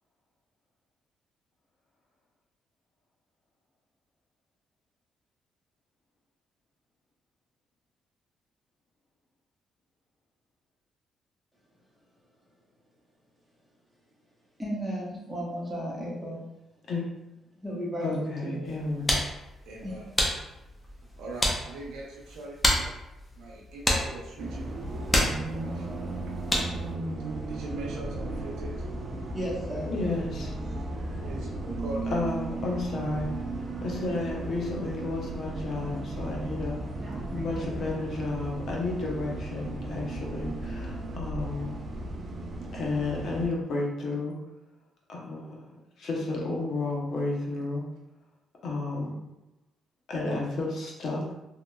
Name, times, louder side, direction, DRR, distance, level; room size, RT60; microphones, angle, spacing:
voice 1, 14.6-16.4 17.6-18.7 19.8-20.0 29.3-29.9, equal, 10° right, 1.0 m, -34 dB
voice 2, 18.0-19.2 29.9-30.5 32.1-33.3 33.8-36.8 37.3-41.9 42.7-44.4 45.1-47.8 48.6-49.2 50.1-51.3, left 2 dB, 60° left, 0.7 m, -32 dB
sound 1, 18.6-26.9, left 1 dB, 15° left, 0.7 m, -31 dB
voice 3, 19.6-20.1 21.2-22.9 23.4-24.6 25.7-25.9 27.5-28.8 31.2-32.1, right 2 dB, 85° right, 0.5 m, -40 dB
Bus, 24.4-43.5, right 2 dB, 40° right, 0.5 m, -35 dB
2.9 x 2.8 x 2.2 m
cardioid pair, 90°, 0 cm